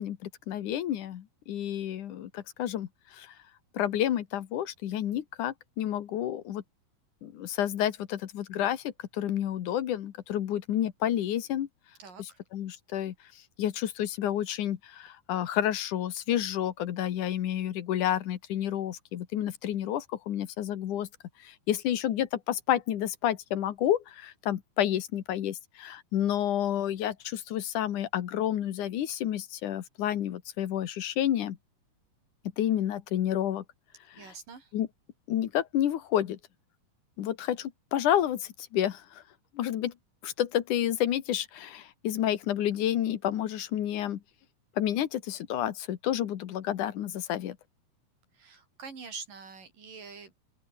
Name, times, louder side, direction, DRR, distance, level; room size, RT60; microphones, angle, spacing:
voice 1, 0.0-3.3 3.7-6.6 7.2-11.7 12.5-13.1 13.6-21.1 21.4-31.6 32.6-33.6 34.7-34.9 35.3-36.4 37.2-39.2 39.5-39.9 40.2-44.2 44.8-47.6, left 11 dB, 70° left, 2.9 m, -30 dB
voice 2, 12.0-12.4 34.2-34.7 48.3-50.3, right 5 dB, 85° right, 6.8 m, -45 dB
open air
omnidirectional pair, 3.7 m